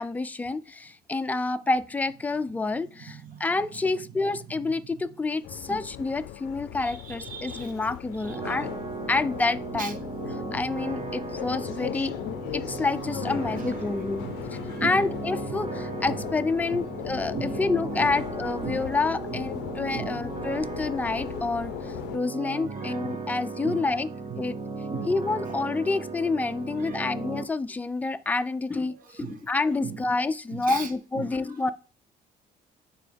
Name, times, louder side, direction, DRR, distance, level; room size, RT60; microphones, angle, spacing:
voice 1, 0.0-8.7 9.1-10.0 10.5-12.1 12.5-14.3 14.8-24.1 24.4-24.6 25.1-31.7, left 3 dB, 10° left, 0.3 m, -28 dB
voice 2, 3.1-3.4 5.7-5.9 6.8-7.7 8.3-8.4 9.7-9.9 13.6-15.0 16.1-16.2 16.7-16.9 17.3-17.6 18.0-18.1 18.6-18.9 19.3-19.4 19.9-20.2 22.7-23.2 23.6-23.9 24.3-24.5 24.9-25.1 25.4-25.5 26.8-27.0 29.2-29.4 29.8-30.0 30.5-30.9 31.1-31.4, right 6 dB, 55° right, 1.1 m, -38 dB
sound 1, 5.4-22.2, left 14 dB, 90° left, 0.4 m, -38 dB
sound 2, 8.2-27.4, right 4 dB, 30° right, 0.8 m, -36 dB
8.9 x 3.8 x 3.4 m
cardioid pair, 110°, 17 cm